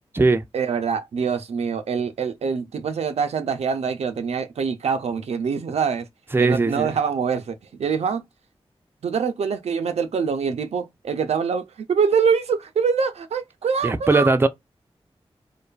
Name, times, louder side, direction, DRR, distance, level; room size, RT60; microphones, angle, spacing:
voice 1, 0.5-6.1 6.4-8.2 9.0-14.3, right 6 dB, 85° right, 0.4 m, -24 dB
voice 2, 6.3-6.9 13.8-14.5, right 3 dB, 20° right, 0.4 m, -19 dB
2.5 x 2.2 x 2.3 m
cardioid pair, 50°, 11 cm